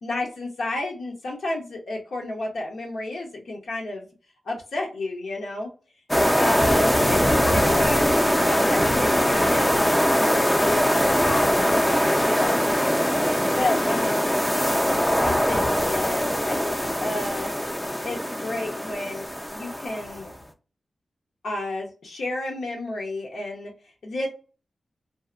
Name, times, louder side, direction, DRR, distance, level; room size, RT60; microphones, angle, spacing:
voice 1, 0.0-4.0 4.5-5.7 6.4-8.1 8.3-9.9 10.2-12.0 12.3-12.9 13.2-14.6 15.1-16.7 17.0-17.5 18.0-20.3 21.4-23.7 24.0-24.3, left 2 dB, 85° left, -1 dB, 0.7 m, -31 dB
sound 1, 6.1-20.3, equal, 10° left, 0.4 m, -22 dB
2.7 x 2.0 x 2.4 m, 0.35 s
wide cardioid pair, 95°, 0 cm